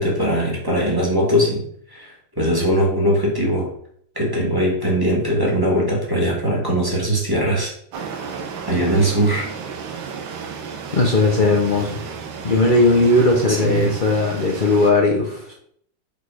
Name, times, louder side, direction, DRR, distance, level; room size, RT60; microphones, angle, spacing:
voice 1, 0.0-1.6 1.9-3.7 4.1-7.7 8.7-9.5 13.5-13.9, equal, 15° right, -3 dB, 1.4 m, -20 dB
sound 1, 7.9-14.9, right 6 dB, 75° right, 1.6 m, -33 dB
voice 2, 10.9-12.0 12.4-15.5, left 2 dB, 75° left, -1 dB, 0.4 m, -17 dB
5.1 x 4.0 x 4.8 m, 0.65 s
omnidirectional pair, 2.2 m